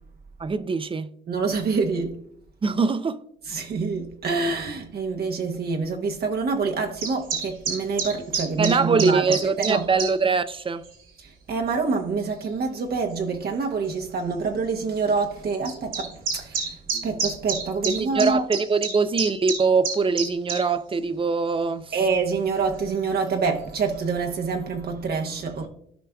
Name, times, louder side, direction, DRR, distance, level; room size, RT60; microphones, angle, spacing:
voice 1, 0.4-1.1 2.6-3.2 8.6-10.8 16.9-17.1 17.9-21.9, right 4 dB, 25° right, 0.5 m, -23 dB
voice 2, 1.3-2.2 3.5-9.4 9.7-9.9 11.2-16.7 17.0-18.4 21.9-25.7, right 4 dB, 50° right, 0.9 m, -26 dB
sound 1, 7.0-10.1 10.8-11.0 11.9-12.0 13.1-13.2 13.5-13.6 13.9-14.0 15.6-20.6, right 5 dB, 85° right, 2.1 m, -28 dB
14.0 x 5.0 x 2.3 m
cardioid pair, 90°, 20 cm